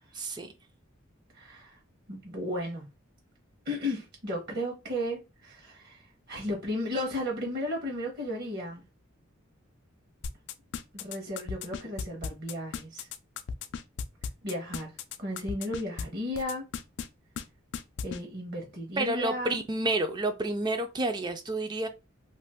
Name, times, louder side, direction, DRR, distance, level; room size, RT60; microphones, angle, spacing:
voice 1, 0.1-0.5 19.0-21.9, right 2 dB, 20° right, 0.3 m, -29 dB
voice 2, 1.3-1.8 2.1-2.9 3.6-8.8 10.9-13.1 14.4-14.9 15.2-16.7 18.0-19.5, left 1 dB, 55° right, 0.9 m, -34 dB
sound 1, 10.2-16.0 16.3-17.1 17.4-17.5 17.7-18.2, left 6 dB, 60° left, 0.3 m, -35 dB
2.5 x 2.3 x 3.4 m
head